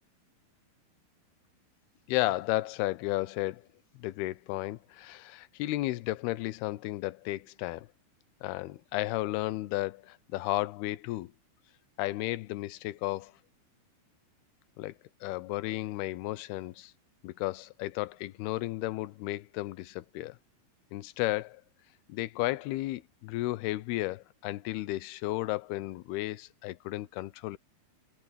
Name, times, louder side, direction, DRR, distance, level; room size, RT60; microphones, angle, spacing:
voice 1, 2.1-3.6 4.0-7.9 8.4-11.3 12.0-13.3 14.8-14.9 15.2-16.9 17.2-20.4 20.9-21.6 22.1-27.6, left 18 dB, 90° left, 2.7 m, -33 dB
omnidirectional pair, 4.4 m